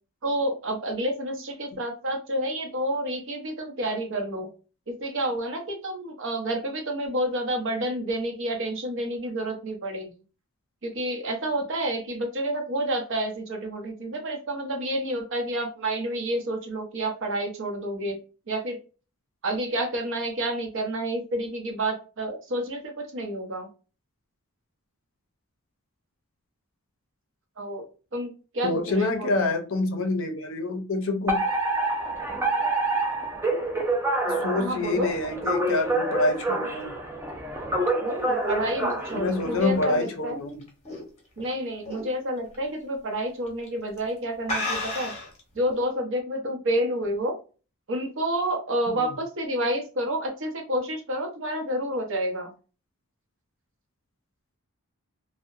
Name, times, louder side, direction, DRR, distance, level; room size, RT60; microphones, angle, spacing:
voice 1, 0.2-4.5 4.9-10.1 10.8-18.2 18.5-18.8 19.4-23.7 27.6-27.9 28.1-29.3 34.5-35.1 38.0-40.4 41.4-45.1 45.5-47.3 47.9-52.5, right 1 dB, 55° right, 3 dB, 0.7 m, -29 dB
voice 2, 28.6-31.4 34.3-37.0 39.1-40.6 49.0-49.1, left 2 dB, 60° left, 6 dB, 0.5 m, -27 dB
Alarm, 31.3-39.8, right 2 dB, 10° right, 0.4 m, -27 dB
sound 1, 38.3-41.4 41.8-42.2 42.5-42.6 43.5-43.7 44.0-44.1 44.4-45.4, left 2 dB, 30° left, 0.7 m, -33 dB
2.7 x 2.1 x 2.4 m, 0.34 s
head